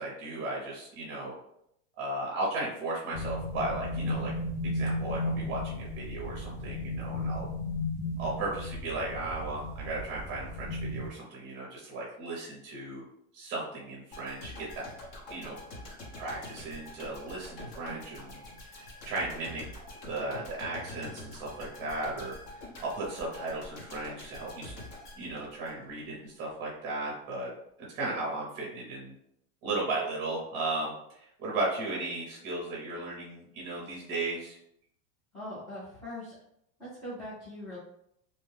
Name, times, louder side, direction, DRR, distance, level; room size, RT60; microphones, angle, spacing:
voice 1, 0.0-1.3 2.0-4.3 4.6-7.5 8.2-13.0 13.3-14.9 15.3-15.6 16.2-18.4 18.7-19.6 20.1-24.7 25.1-27.5 27.8-29.1 29.6-34.6, right 2 dB, 25° right, -4 dB, 0.7 m, -36 dB
sound 1, 3.1-11.1, left 1 dB, 70° left, 1.1 m, -34 dB
sound 2, 14.1-26.1 26.4-26.6, left 1 dB, 40° left, 0.8 m, -46 dB
voice 2, 35.3-36.3 36.8-37.8, left 1 dB, 10° left, -13 dB, 0.3 m, -41 dB
2.6 x 2.1 x 3.2 m, 0.75 s
supercardioid pair, 160°, 44 cm